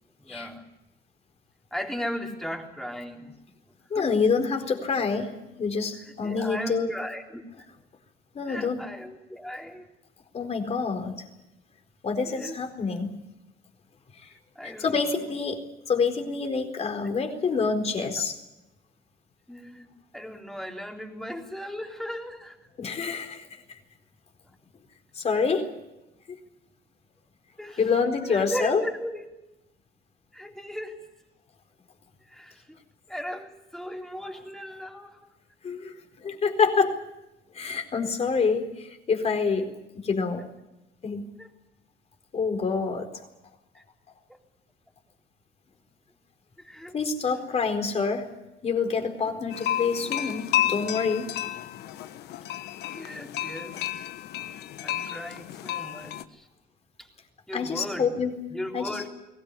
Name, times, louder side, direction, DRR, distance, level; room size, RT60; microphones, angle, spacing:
voice 1, 0.2-0.6 1.7-3.3 3.9-4.1 6.0-7.7 8.5-9.9 12.2-12.6 14.6-15.2 17.0-17.1 19.5-22.6 27.6-27.8 28.2-29.2 30.3-31.1 32.2-32.8 33.1-35.3 41.4-41.5 43.7-43.8 44.3-44.4 46.6-47.0 47.3-47.5 52.9-54.1 54.8-56.5 57.0-57.1 57.5-58.1 58.5-59.1, equal, 5° left, 1 dB, 3.7 m, -37 dB
voice 2, 3.9-5.3 5.6-6.9 8.3-8.8 10.3-11.3 12.0-13.2 14.1-14.3 14.6-15.6 15.9-18.4 22.8-23.8 25.1-25.7 26.3-26.4 27.8-28.8 35.6-37.0 37.5-40.5 41.0-41.2 42.3-43.1 46.9-48.3 48.6-51.3 57.5-58.4 58.7-59.0, left 5 dB, 40° left, 5 dB, 4.3 m, -27 dB
sound 1, 49.5-56.2, left 12 dB, 75° left, 1.2 m, -31 dB
22.0 x 18.0 x 9.8 m, 0.94 s
cardioid pair, 110°, 17 cm